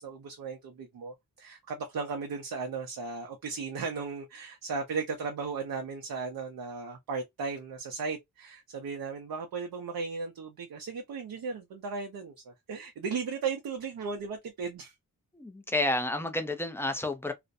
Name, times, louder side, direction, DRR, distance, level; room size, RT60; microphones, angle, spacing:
voice 1, 0.0-14.9, right 5 dB, 80° right, 0.6 m, -36 dB
voice 2, 15.3-17.3, left 1 dB, 5° left, 0.4 m, -30 dB
2.4 x 2.1 x 2.5 m
wide cardioid pair, 125°, 36 cm